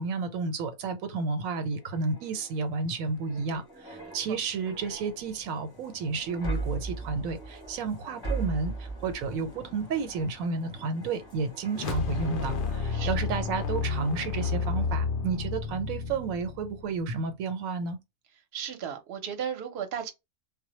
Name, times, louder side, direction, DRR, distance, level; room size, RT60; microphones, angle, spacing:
voice 1, 0.0-18.0, right 4 dB, 85° right, 1.0 m, -31 dB
sound 1, 1.7-14.1 14.4-14.7, right 3 dB, 20° left, 0.6 m, -40 dB
voice 2, 4.0-4.4 12.9-13.1 18.5-20.1, right 8 dB, 55° right, 0.8 m, -35 dB
sound 2, 11.7-17.1, left 4 dB, 70° left, 0.5 m, -31 dB
2.1 x 2.1 x 2.9 m
omnidirectional pair, 1.4 m